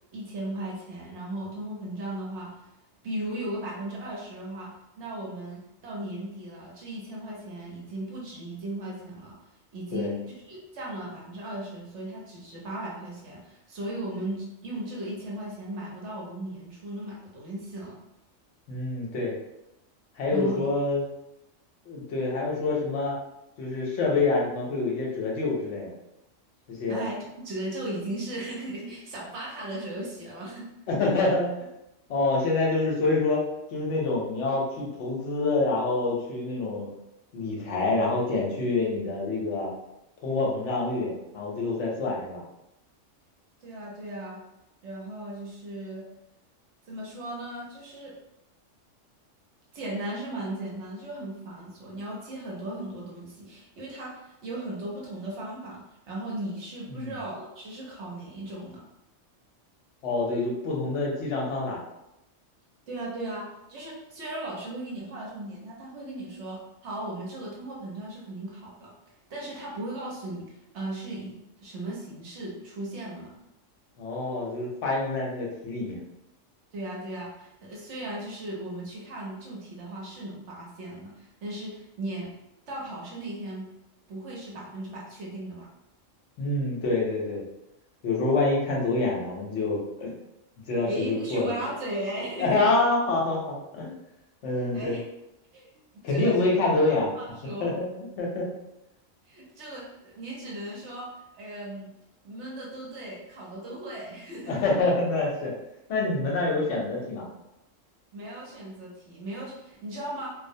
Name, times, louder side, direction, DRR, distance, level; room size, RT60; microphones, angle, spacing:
voice 1, 0.1-2.5 3.0-9.4 9.7-10.2 10.5-17.9 20.3-20.7 26.9-27.2 27.4-30.7 43.6-44.4 44.8-46.1 46.9-48.1 49.7-58.8 62.9-68.9 69.3-71.3 71.6-73.3 76.7-82.3 82.7-83.7 84.1-85.7 90.9-92.8 94.6-95.0 95.5-95.7 96.1-96.5 97.1-97.7 99.3-101.1 101.3-101.9 102.2-104.8 108.1-110.3, right 1 dB, 65° right, -4 dB, 0.9 m, -37 dB
voice 2, 18.7-19.3 20.2-21.0 21.9-23.2 23.6-25.9 26.7-27.0 30.9-31.5 32.1-33.4 33.7-36.9 37.3-39.7 40.2-42.4 56.9-57.1 60.0-61.8 74.0-76.0 86.4-87.4 88.0-90.1 90.7-91.5 92.4-93.9 94.4-95.0 96.0-97.1 97.6-98.5 104.5-105.5 105.9-107.3, left 3 dB, 70° left, -2 dB, 0.9 m, -26 dB
2.4 x 2.0 x 2.6 m, 0.88 s
omnidirectional pair, 1.3 m